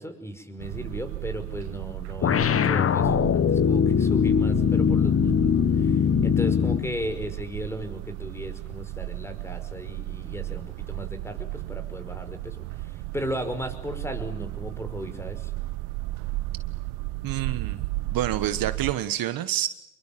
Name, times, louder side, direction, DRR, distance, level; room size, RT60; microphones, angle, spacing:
voice 1, 0.0-15.5, equal, 5° left, 9 dB, 5.5 m, -36 dB
sound 1, 0.6-18.9, right 18 dB, 80° right, 1.0 m, -35 dB
sound 2, 2.2-6.9, left 7 dB, 35° left, 1.3 m, -21 dB
voice 2, 17.2-19.7, right 12 dB, 60° right, 12 dB, 1.5 m, -28 dB
27.5 x 22.5 x 7.6 m, 0.81 s
supercardioid pair, 80°, 39 cm